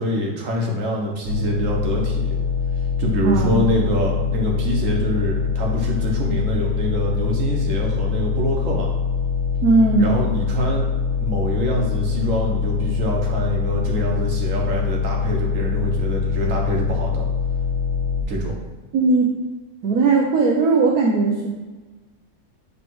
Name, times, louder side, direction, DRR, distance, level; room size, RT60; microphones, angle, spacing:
voice 1, 0.0-2.4 3.0-8.9 10.0-10.9 11.2-17.2 18.3-18.5, equal, 55° right, -1 dB, 1.6 m, -25 dB
sound 1, 1.3-18.2, left 6 dB, 85° right, 2.1 m, -23 dB
voice 2, 3.2-3.6 9.6-10.2 18.9-19.3 19.8-21.5, right 3 dB, 70° right, -2 dB, 1.2 m, -18 dB
8.0 x 3.4 x 4.6 m, 1.2 s
omnidirectional pair, 1.7 m